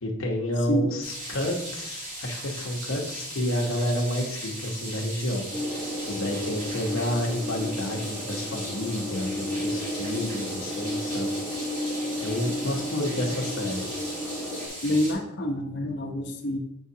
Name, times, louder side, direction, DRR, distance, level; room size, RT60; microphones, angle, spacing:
voice 1, 0.0-5.4 6.1-11.3 12.2-13.9, left 1 dB, 85° left, 0 dB, 0.9 m, -30 dB
sound 1, 1.0-15.1, right 1 dB, 40° right, 2.3 m, -38 dB
sound 2, 5.5-14.7, left 1 dB, 5° right, 1.2 m, -33 dB
voice 2, 14.8-16.6, equal, 55° left, 1 dB, 0.8 m, -27 dB
7.1 x 4.7 x 2.8 m, 0.79 s
head